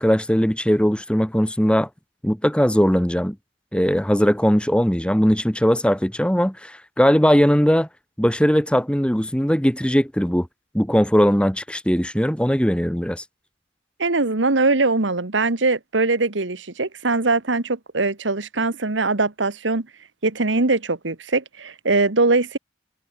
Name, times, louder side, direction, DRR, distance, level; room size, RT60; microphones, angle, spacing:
voice 1, 0.0-1.9 2.2-3.4 3.7-7.9 8.2-10.5 10.7-13.2, equal, 5° left, 1.8 m, -19 dB
voice 2, 14.0-19.9 20.2-22.6, right 3 dB, 85° right, 1.6 m, -21 dB
head